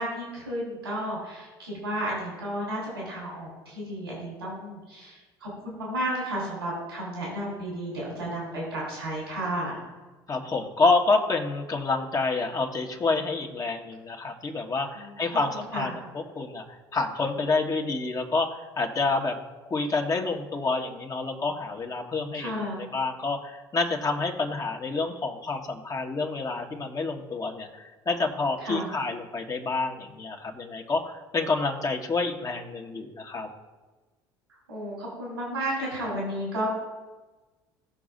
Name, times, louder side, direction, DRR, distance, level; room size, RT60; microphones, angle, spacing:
voice 1, 0.0-9.8 14.9-15.3 15.7-15.9 22.3-22.9 28.6-28.9 34.7-36.7, right 1 dB, 85° right, -5 dB, 3.2 m, -33 dB
voice 2, 10.3-19.4 19.6-22.5 22.9-33.5, left 3 dB, 30° left, 2 dB, 1.5 m, -28 dB
17.5 x 6.1 x 2.6 m, 1.2 s
figure-of-eight pair, 60°, 13 cm